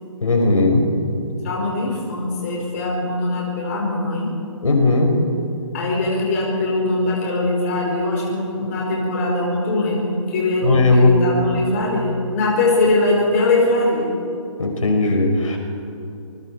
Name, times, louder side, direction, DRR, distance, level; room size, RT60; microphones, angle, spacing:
voice 1, 0.2-0.9 4.6-5.2 10.6-11.2 14.6-15.6, left 2 dB, 75° left, 2 dB, 5.3 m, -17 dB
voice 2, 1.4-4.3 5.7-14.1, left 2 dB, 30° left, -2 dB, 5.0 m, -21 dB
28.5 x 21.0 x 4.8 m, 2.7 s
hypercardioid pair, 165°, 17 cm